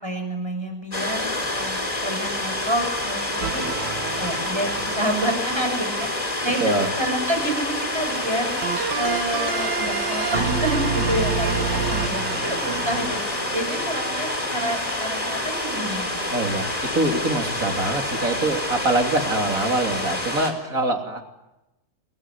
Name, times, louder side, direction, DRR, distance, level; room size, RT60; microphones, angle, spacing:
voice 1, 0.0-3.7 4.2-8.5 9.0-16.1, equal, 10° right, 4 dB, 6.8 m, -28 dB
sound 1, 0.9-20.5, left 1 dB, 15° left, 4.0 m, -28 dB
sound 2, 3.4-5.6 8.6-14.3, right 5 dB, 55° right, 2.1 m, -29 dB
voice 2, 16.3-21.2, right 2 dB, 40° right, 4 dB, 3.5 m, -24 dB
29.0 x 20.5 x 9.9 m, 0.95 s
omnidirectional pair, 2.4 m